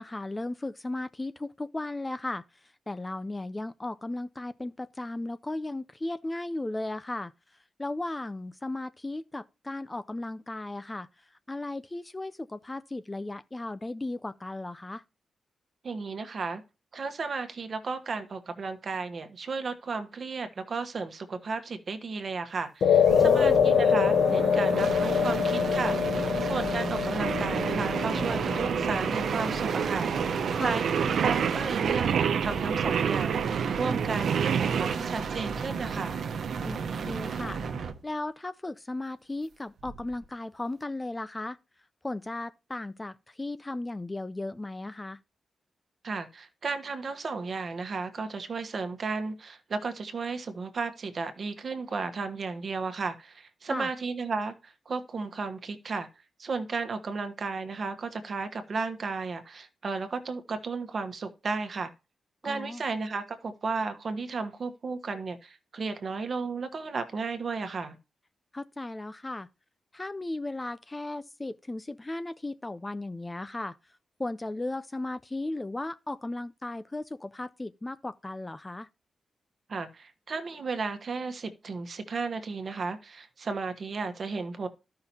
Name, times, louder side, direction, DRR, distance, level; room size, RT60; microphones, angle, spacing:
voice 1, 0.0-2.4 2.9-7.3 7.8-11.1 11.5-15.0 23.2-23.6 30.6-30.8 36.6-37.6 38.0-41.6 42.0-45.2 53.7-53.9 62.4-62.8 68.5-69.5 69.9-73.8 74.2-78.9, left 2 dB, 15° left, 0.4 m, -36 dB
voice 2, 15.8-16.6 16.9-26.0 26.4-30.1 30.6-33.4 33.8-36.2 46.0-56.1 56.4-61.9 62.4-68.0 79.7-84.7, right 4 dB, 45° right, 1.2 m, -34 dB
sound 1, 22.8-31.3, left 7 dB, 75° left, 0.7 m, -25 dB
sound 2, 23.0-38.0 39.8-40.2, right 6 dB, 70° right, 1.0 m, -34 dB
Singing, 27.2-34.9, right 7 dB, 90° right, 0.6 m, -29 dB
14.0 x 5.7 x 2.7 m
wide cardioid pair, 165°, 0 cm